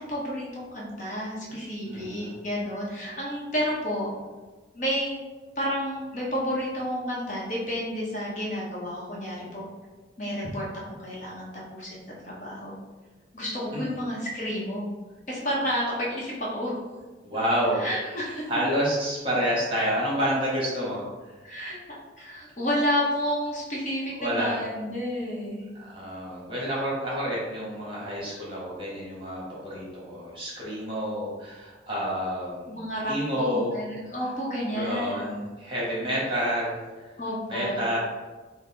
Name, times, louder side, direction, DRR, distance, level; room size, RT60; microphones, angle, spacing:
voice 1, 0.0-4.1 4.7-5.2 5.6-9.6 10.2-12.8 13.3-14.9 15.3-16.8 17.7-18.5 21.4-25.7 32.7-35.4 37.2-37.9, equal, 40° left, -5 dB, 0.8 m, -31 dB
voice 2, 1.9-2.4 13.7-14.0 17.3-18.1 18.5-21.0 24.2-24.5 25.7-32.8 33.1-33.8 34.7-36.8 37.5-38.0, equal, 30° right, -6 dB, 1.1 m, -29 dB
3.9 x 2.0 x 3.8 m, 1.3 s
head